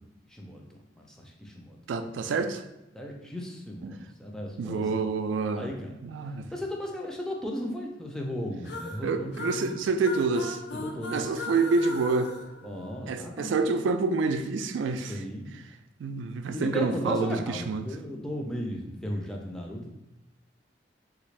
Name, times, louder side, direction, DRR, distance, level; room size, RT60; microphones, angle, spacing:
voice 1, 0.2-2.1 2.9-4.9 5.5-5.9 6.5-9.7 10.7-11.4 12.6-13.5 15.1-15.5 16.5-20.0, equal, 5° left, 0 dB, 0.4 m, -36 dB
voice 2, 1.9-2.6 3.8-4.0 4.6-5.7 6.0-6.5 9.0-10.6 11.1-12.3 13.1-15.1 16.0-17.9, right 4 dB, 90° right, 9 dB, 0.3 m, -27 dB
sound 1, 8.6-13.4, left 2 dB, 65° left, 0.4 m, -39 dB
3.4 x 2.5 x 3.1 m, 0.94 s
head